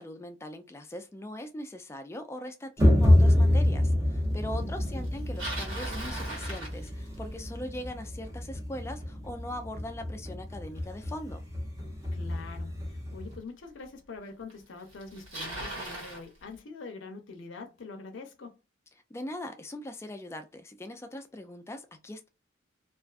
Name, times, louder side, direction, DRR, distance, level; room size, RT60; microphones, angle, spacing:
voice 1, 0.0-11.4 19.1-22.3, left 1 dB, 15° left, 0.3 m, -41 dB
sound 1, 2.8-13.4, left 1 dB, 15° right, 0.7 m, -27 dB
voice 2, 4.5-5.0 12.1-18.6, left 3 dB, 75° left, 0.6 m, -44 dB
Bicycle, 5.0-7.4 12.4-12.5 13.4-13.5 14.5-14.6 14.8-16.2, right 1 dB, 85° right, 1.4 m, -38 dB
2.4 x 2.3 x 2.3 m
head